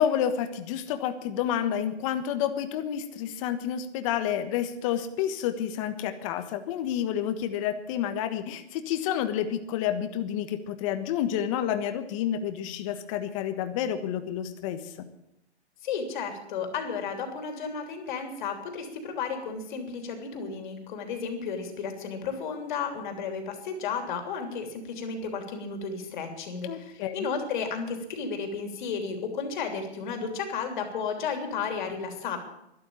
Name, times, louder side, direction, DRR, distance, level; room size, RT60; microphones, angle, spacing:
voice 1, 0.0-14.9 26.6-27.3, left 10 dB, 30° left, 9 dB, 1.4 m, -29 dB
voice 2, 15.8-32.4, left 5 dB, 45° left, 5 dB, 3.2 m, -33 dB
12.5 x 12.0 x 8.7 m, 0.85 s
hypercardioid pair, 150°, 33 cm